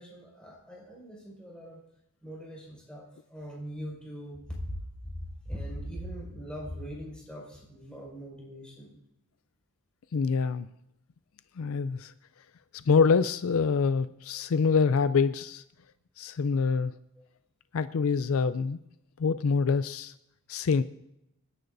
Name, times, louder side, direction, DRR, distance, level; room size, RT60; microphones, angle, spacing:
voice 1, 0.0-1.8 2.2-4.8 5.4-8.9, equal, 5° left, -5 dB, 5.4 m, -41 dB
voice 2, 10.1-10.7 11.6-12.1 12.7-15.6 16.2-16.9 17.7-18.8 19.2-20.1 20.5-20.8, left 5 dB, 65° left, 13 dB, 0.4 m, -25 dB
27.0 x 10.5 x 2.7 m, 0.83 s
head